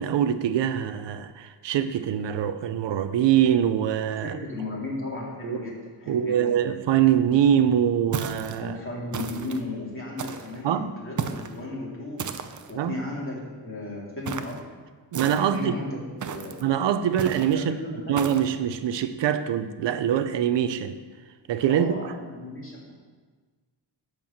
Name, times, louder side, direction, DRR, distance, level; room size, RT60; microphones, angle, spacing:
voice 1, 0.0-4.4 5.4-5.6 6.1-8.8 10.6-10.9 12.7-13.0 15.1-15.7 16.6-17.7 18.1-21.0 21.5-22.1, right 9 dB, 85° right, 11 dB, 0.7 m, -24 dB
voice 2, 4.2-6.5 8.6-12.2 12.7-14.7 15.5-16.5 17.5-18.2 21.7-22.9, left 2 dB, 30° left, -4 dB, 3.2 m, -35 dB
sound 1, 8.1-8.6 9.1-9.6 10.2-10.6 11.2-11.6 12.2-12.7 14.3-14.6 15.1-15.6 16.2-16.6 17.2-17.5 18.2-18.5, right 7 dB, 45° right, 0.7 m, -33 dB
10.5 x 4.7 x 7.2 m, 1.4 s
cardioid pair, 105°, 42 cm